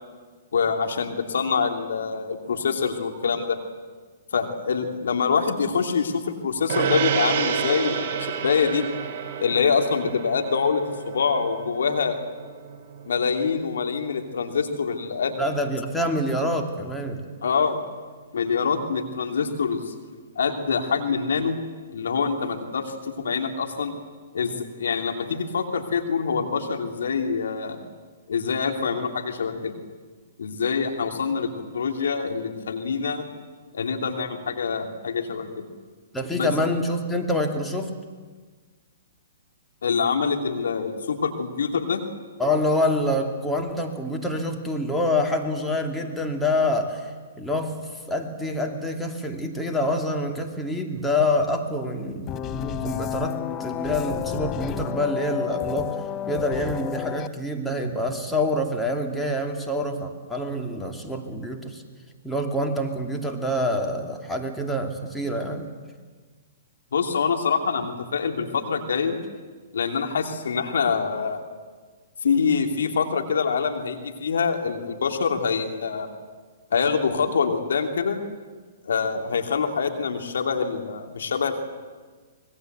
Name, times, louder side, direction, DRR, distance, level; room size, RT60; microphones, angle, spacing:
voice 1, 0.5-3.6 4.3-8.8 9.4-12.2 13.0-15.3 17.4-17.8 18.3-19.9 20.4-21.6 21.9-23.9 24.3-27.8 28.3-29.7 30.4-33.3 33.7-35.7 36.3-36.5 39.8-42.0 66.9-69.2 69.7-71.4 72.2-76.1 76.7-78.2 78.8-81.6, left 5 dB, 75° left, 5 dB, 2.8 m, -25 dB
Gong, 6.7-16.4, right 7 dB, 50° right, 4.5 m, -31 dB
voice 2, 15.4-17.2 36.1-38.0 42.4-47.8 48.1-56.0 56.3-61.8 62.2-65.7, left 1 dB, 5° left, 2 dB, 2.6 m, -26 dB
sound 1, 52.3-57.3, left 12 dB, 25° left, 0.7 m, -30 dB
25.0 x 21.0 x 8.1 m, 1.4 s
hypercardioid pair, 125°, 0 cm